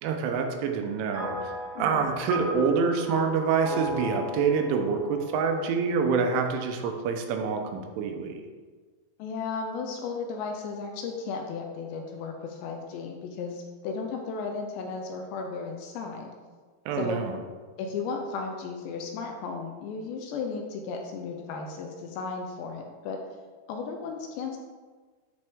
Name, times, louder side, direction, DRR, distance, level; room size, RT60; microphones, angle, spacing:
voice 1, 0.0-1.5 1.8-8.4 16.9-17.4, right 5 dB, 85° right, 4 dB, 3.3 m, -27 dB
sound 1, 1.1-6.6, equal, 70° right, 3.6 m, -35 dB
voice 2, 1.8-2.1 9.2-16.3 16.9-17.2 17.8-23.2 23.7-24.6, left 4 dB, 80° left, 2 dB, 2.7 m, -35 dB
11.0 x 4.3 x 3.6 m, 1.4 s
omnidirectional pair, 5.4 m